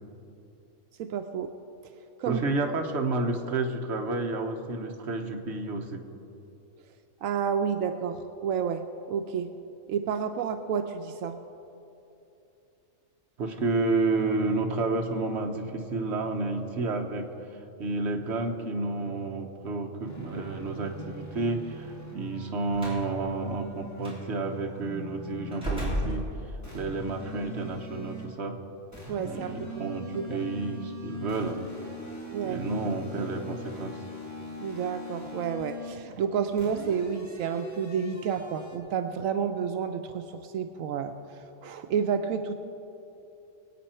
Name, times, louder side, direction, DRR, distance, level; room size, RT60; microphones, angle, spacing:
voice 1, 1.0-1.5 2.2-2.4 7.2-9.5 9.9-11.4 29.1-29.9 30.1-30.4 32.3-32.6 34.6-42.5, right 7 dB, 85° right, 7 dB, 1.0 m, -30 dB
voice 2, 2.3-6.0 13.4-17.3 17.8-26.3 26.7-28.6 29.2-31.6 32.4-34.0, right 3 dB, 55° right, 3 dB, 1.3 m, -30 dB
sound 1, 20.0-25.7 26.6-28.4 28.9-36.0 36.6-38.8, left 1 dB, 10° left, 2.1 m, -42 dB
Slam, 22.7-23.1 24.0-24.2 25.5-26.8, right 1 dB, 5° right, 3.6 m, -32 dB
23.0 x 8.9 x 4.4 m, 2.8 s
omnidirectional pair, 1.4 m